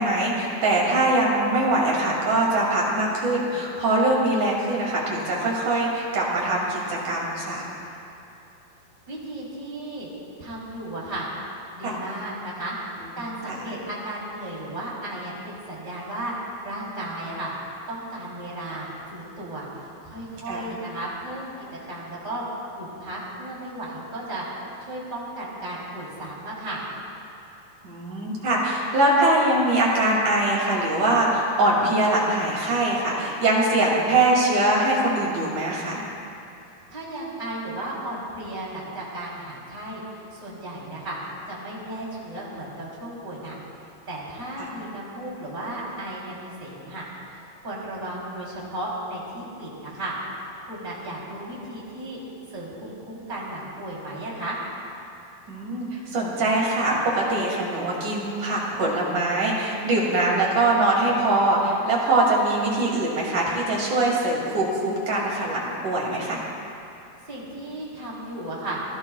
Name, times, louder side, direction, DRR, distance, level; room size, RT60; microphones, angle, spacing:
voice 1, 0.0-7.7 11.8-11.9 13.5-13.6 20.5-20.6 27.8-36.0 44.6-44.7 55.5-66.4, right 2 dB, 50° right, -4 dB, 4.0 m, -22 dB
voice 2, 9.1-10.1 10.4-11.3 11.7-17.5 17.9-21.5 21.9-22.4 22.8-24.4 24.8-26.8 36.9-40.0 40.3-41.2 41.5-43.6 44.1-50.1 50.6-52.2 52.5-54.6 67.3-68.8, right 1 dB, 10° right, -6 dB, 3.5 m, -34 dB
29.5 x 16.5 x 2.4 m, 2.7 s
omnidirectional pair, 4.5 m